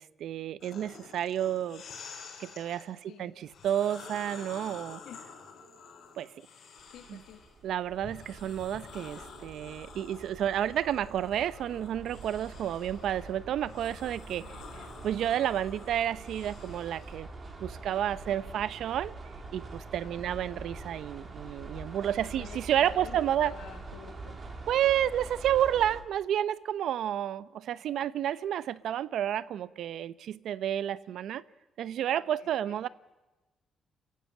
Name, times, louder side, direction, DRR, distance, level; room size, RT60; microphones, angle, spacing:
voice 1, 0.0-1.8 2.4-5.0 6.2-6.3 7.1-7.2 7.6-14.4 15.0-17.3 17.6-19.1 19.5-23.5 24.7-31.4 31.8-32.9, right 11 dB, 75° right, 0.7 m, -30 dB
sound 1, 0.6-2.9 3.4-7.5 8.0-17.2, left 5 dB, 65° left, 7.4 m, -49 dB
voice 2, 3.0-3.4 5.0-5.2 6.9-7.4 14.4-14.8 20.0-20.4 22.1-24.4 32.1-32.8, left 9 dB, 85° left, 1.6 m, -50 dB
sound 2, 6.8-26.0, right 3 dB, 40° right, 3.8 m, -45 dB
28.5 x 15.0 x 8.7 m
cardioid pair, 90°, 0 cm